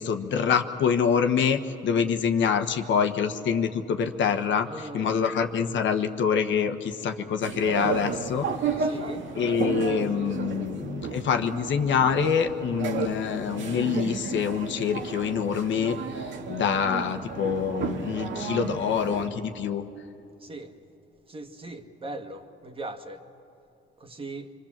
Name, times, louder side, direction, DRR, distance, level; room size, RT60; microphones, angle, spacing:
voice 1, 0.0-8.5 9.4-16.0 16.5-19.9, left 7 dB, 70° left, 7 dB, 1.3 m, -25 dB
voice 2, 4.6-5.1 8.8-9.3 20.4-20.7 21.3-23.2 24.0-24.5, right 2 dB, 25° right, 5 dB, 1.8 m, -39 dB
sound 1, 7.4-19.3, right 5 dB, 70° right, 2.0 m, -33 dB
25.5 x 24.5 x 7.4 m, 2.7 s
cardioid pair, 90°, 20 cm